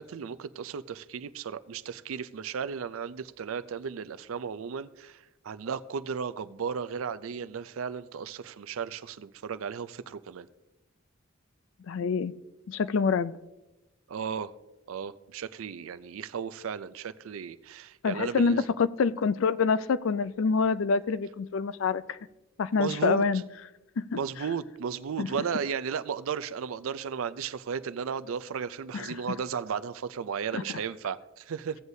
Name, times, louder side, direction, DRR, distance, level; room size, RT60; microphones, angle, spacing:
voice 1, 0.0-10.5 14.1-14.5 14.9-18.6 22.8-23.2 24.1-31.8, right 6 dB, 80° right, 0.4 m, -35 dB
voice 2, 11.9-12.3 12.7-13.3 18.0-22.2 22.6-23.4 24.0-24.2 25.2-25.3 28.9-29.2 30.5-30.8, left 5 dB, 70° left, 0.4 m, -26 dB
16.0 x 7.9 x 2.7 m
head